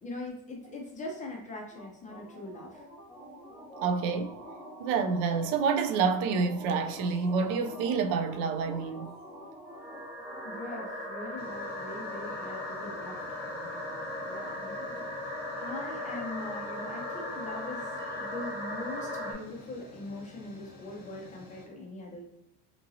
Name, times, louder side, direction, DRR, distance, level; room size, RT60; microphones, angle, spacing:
voice 1, 0.0-2.8 10.4-15.1 15.6-17.9 18.2-22.3, left 2 dB, 20° left, 0.5 m, -42 dB
sound 1, 1.7-19.3, left 1 dB, 5° right, 0.9 m, -39 dB
voice 2, 3.8-4.4 4.8-9.1, right 5 dB, 55° right, 0.4 m, -28 dB
sound 2, 7.0-7.5 9.2-9.3 11.4-21.7, left 3 dB, 45° left, 0.9 m, -51 dB
2.9 x 2.6 x 2.6 m
supercardioid pair, 135°, 37 cm